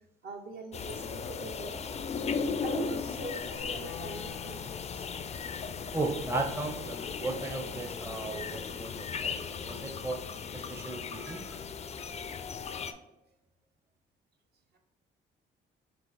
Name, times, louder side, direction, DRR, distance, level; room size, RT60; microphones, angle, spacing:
voice 1, 0.2-2.0 2.3-4.6, right 3 dB, 55° right, 4 dB, 0.8 m, -42 dB
sound 1, 0.7-12.9, left 6 dB, 35° left, 0.4 m, -37 dB
Wind instrument woodwind instrument, 3.8-9.9, left 10 dB, 90° left, 0.5 m, -51 dB
voice 2, 5.9-10.2 10.5-11.6, right 2 dB, 10° right, 3 dB, 0.6 m, -36 dB
4.6 x 2.8 x 4.0 m, 0.91 s
cardioid pair, 90°, 20 cm